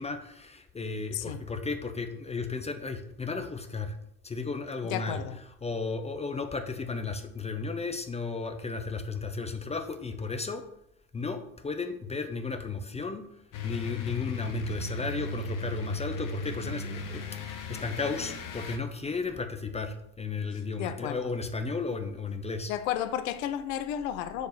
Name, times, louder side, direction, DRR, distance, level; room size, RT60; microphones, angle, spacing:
voice 1, 0.0-3.9 4.2-5.2 5.6-10.6 11.1-13.3 13.6-22.7, left 4 dB, 15° left, 0.7 m, -34 dB
voice 2, 4.8-5.4 20.8-21.3 22.7-24.5, left 10 dB, 60° left, 0.8 m, -32 dB
sound 1, 13.5-18.8, left 3 dB, 45° left, 1.4 m, -36 dB
6.7 x 4.6 x 6.4 m
figure-of-eight pair, 70°, 45 cm